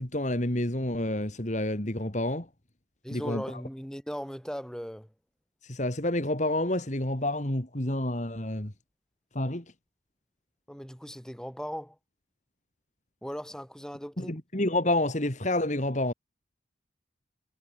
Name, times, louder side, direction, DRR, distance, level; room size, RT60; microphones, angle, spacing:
voice 1, 0.0-2.5 3.1-3.4 5.7-8.7 9.3-9.6 14.2-16.1, left 1 dB, 40° left, 2.7 m, -29 dB
voice 2, 3.0-5.1 10.7-12.0 13.2-14.4, equal, 5° left, 5.9 m, -38 dB
head